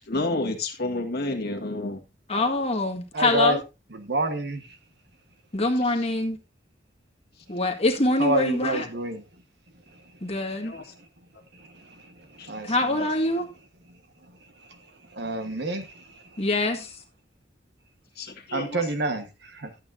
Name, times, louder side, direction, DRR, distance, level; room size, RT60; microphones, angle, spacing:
voice 1, 0.1-2.0 10.6-10.8 12.4-12.5 18.2-18.8, left 2 dB, 60° left, 1.8 m, -30 dB
voice 2, 2.3-3.6 5.5-6.4 7.5-8.9 10.2-10.7 12.6-13.5 16.4-17.0, left 2 dB, 35° left, 1.8 m, -24 dB
voice 3, 3.1-3.6 3.9-4.7 8.2-9.2 10.6-10.7 11.5-13.1 14.7-14.8 15.1-16.4 18.5-19.7, right 1 dB, 65° right, 1.5 m, -29 dB
12.5 x 8.6 x 2.7 m
head